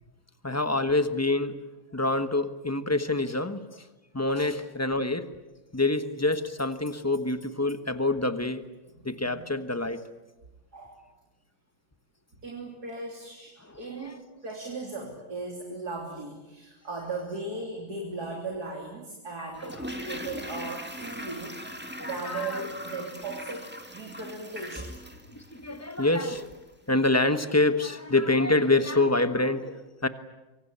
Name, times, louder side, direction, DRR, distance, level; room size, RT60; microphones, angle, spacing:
voice 1, 0.4-1.5 1.9-3.8 4.1-5.3 5.7-8.6 9.0-10.1 13.9-14.2 19.4-19.5 22.0-22.6 25.3-26.5 26.9-30.1, left 2 dB, 15° left, 10 dB, 0.6 m, -26 dB
voice 2, 8.9-9.5 10.7-11.0 12.4-13.5 13.8-24.9, right 3 dB, 50° right, 0 dB, 3.9 m, -37 dB
Toilet flush, 19.5-26.6 26.9-27.0, equal, 5° right, 2.1 m, -40 dB
25.5 x 24.0 x 8.7 m, 1.1 s
omnidirectional pair, 2.3 m